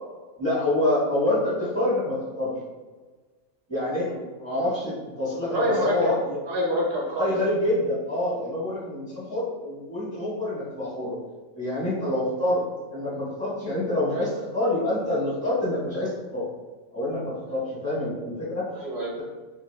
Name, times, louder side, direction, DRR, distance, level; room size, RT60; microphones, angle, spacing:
voice 1, 0.4-2.5 3.7-4.1 4.4-6.4 7.2-11.2 11.5-12.6 12.9-16.5 16.9-18.7, left 1 dB, 10° left, -10 dB, 0.8 m, -26 dB
voice 2, 5.5-6.2 6.4-7.3 18.8-19.1, equal, 65° right, -3 dB, 0.7 m, -26 dB
3.0 x 2.6 x 3.1 m, 1.3 s
omnidirectional pair, 1.4 m